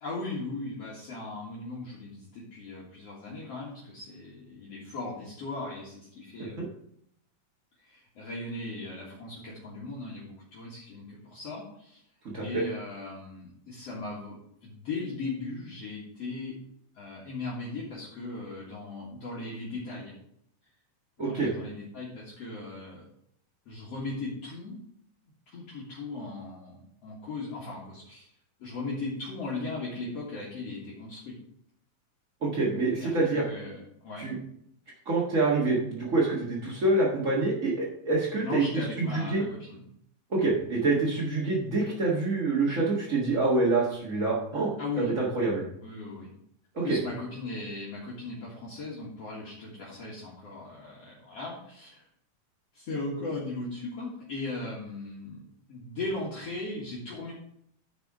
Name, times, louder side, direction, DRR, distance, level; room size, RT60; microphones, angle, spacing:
voice 1, 0.0-6.6 7.8-12.0 12.4-16.6 16.9-20.2 21.2-23.0 23.7-24.8 25.5-28.3 28.6-31.3 33.0-34.3 38.4-39.8 44.8-45.1 45.8-46.3 46.8-52.0 52.7-55.4 55.7-57.3, left 2 dB, 50° left, -6 dB, 2.5 m, -38 dB
voice 2, 21.2-21.5 32.4-33.4 34.2-34.4 35.0-39.4 40.3-45.6 46.7-47.0, right 3 dB, 50° right, -5 dB, 0.9 m, -26 dB
10.0 x 5.2 x 4.8 m, 0.71 s
omnidirectional pair, 3.9 m